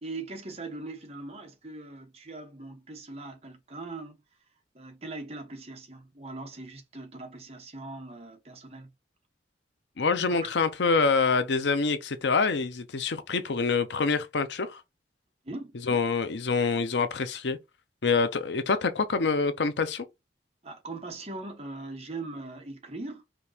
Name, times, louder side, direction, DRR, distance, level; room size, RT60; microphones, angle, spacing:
voice 1, 0.0-4.1 4.7-8.9 10.3-10.5 15.4-15.7 20.6-23.2, right 2 dB, 35° right, 1.2 m, -40 dB
voice 2, 10.0-14.8 15.9-17.6 18.0-20.0, left 4 dB, 80° left, 0.6 m, -26 dB
5.1 x 3.0 x 2.8 m
head